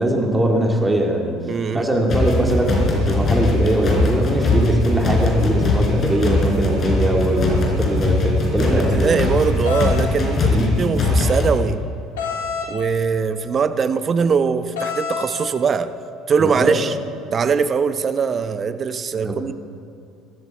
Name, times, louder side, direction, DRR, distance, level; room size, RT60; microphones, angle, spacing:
voice 1, 0.0-1.4 1.7-9.3 10.5-10.7 16.4-16.8 19.2-19.3, right 1 dB, 15° right, 0 dB, 2.7 m, -21 dB
voice 2, 1.5-1.9 8.6-11.8 12.7-15.9 16.3-16.9 17.3-19.5, right 6 dB, 40° right, 12 dB, 0.9 m, -21 dB
sound 1, 2.1-11.5, left 2 dB, 40° left, 4.1 m, -20 dB
sound 2, 9.7-9.9 12.2-12.7 14.8-15.3, left 6 dB, 75° left, 3.4 m, -26 dB
22.5 x 13.5 x 4.5 m, 2.7 s
hypercardioid pair, 65°, 0 cm